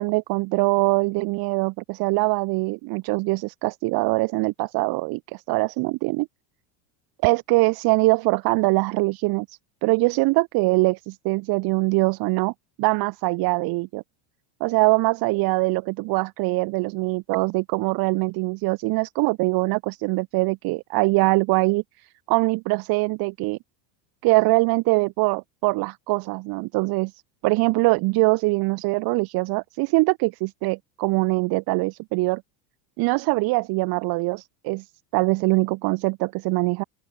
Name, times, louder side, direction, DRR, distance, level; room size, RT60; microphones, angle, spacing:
voice 1, 0.0-6.3 7.2-12.5 12.8-14.0 14.6-23.6 24.2-32.4 33.0-34.9 35.1-36.8, right 25 dB, 45° right, 1.9 m, -23 dB
open air
cardioid pair, 165°, 49 cm